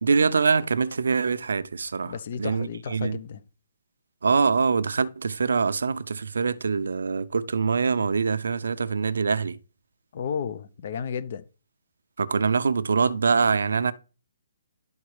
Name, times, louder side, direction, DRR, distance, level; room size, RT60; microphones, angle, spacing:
voice 1, 0.0-2.1 2.4-3.2 4.2-9.6 12.2-13.9, right 5 dB, 85° right, 0.7 m, -24 dB
voice 2, 2.0-3.4 10.1-11.4, left 7 dB, 45° left, 0.7 m, -33 dB
12.0 x 4.0 x 4.8 m
hypercardioid pair, 165°, 0 cm